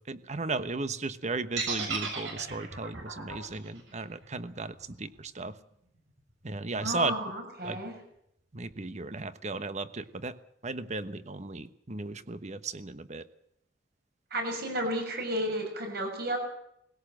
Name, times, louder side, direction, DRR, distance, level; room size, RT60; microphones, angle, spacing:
voice 1, 0.0-5.6 6.4-7.1 7.6-7.8 8.5-10.4 10.6-13.3, right 3 dB, 40° right, 12 dB, 1.1 m, -35 dB
sound 1, 1.6-5.6, right 5 dB, 90° right, 6.8 m, -36 dB
voice 2, 6.8-7.9 14.3-16.4, equal, 60° right, 4 dB, 6.3 m, -32 dB
20.5 x 17.0 x 7.6 m, 0.75 s
head